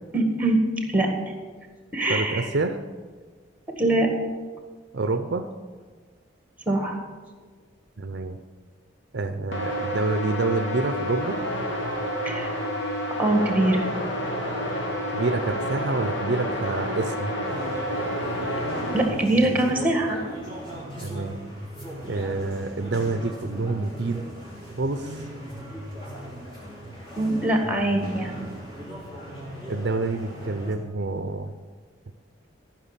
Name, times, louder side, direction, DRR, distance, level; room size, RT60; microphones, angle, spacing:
voice 1, 0.1-0.6 0.9-1.1 1.9-2.5 3.8-4.1 6.7-7.0 12.2-12.5 13.2-13.9 18.9-20.2 27.1-28.5, right 1 dB, 10° right, 3 dB, 1.8 m, -23 dB
voice 2, 2.1-2.8 4.9-5.5 8.0-8.4 9.1-11.4 15.1-17.3 21.0-21.4 22.0-24.3 24.8-25.2 29.7-31.6, right 3 dB, 60° right, 8 dB, 0.6 m, -27 dB
sound 1, 9.5-19.1, equal, 65° left, 2.4 m, -29 dB
sound 2, 17.4-30.7, equal, 25° left, 3.6 m, -38 dB
14.0 x 6.0 x 7.4 m, 1.5 s
head